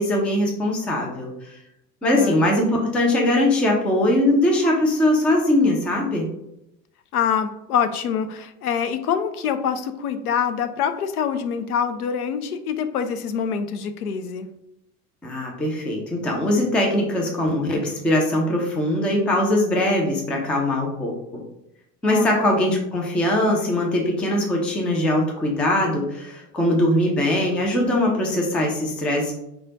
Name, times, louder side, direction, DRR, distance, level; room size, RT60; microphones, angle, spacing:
voice 1, 0.0-1.3 2.0-6.3 15.2-21.1 22.0-29.3, left 1 dB, 5° left, 0 dB, 0.3 m, -21 dB
voice 2, 2.0-2.4 7.1-14.5 22.1-22.3, left 7 dB, 65° left, 9 dB, 0.6 m, -25 dB
4.8 x 2.2 x 3.9 m, 0.83 s
figure-of-eight pair, 70°, 48 cm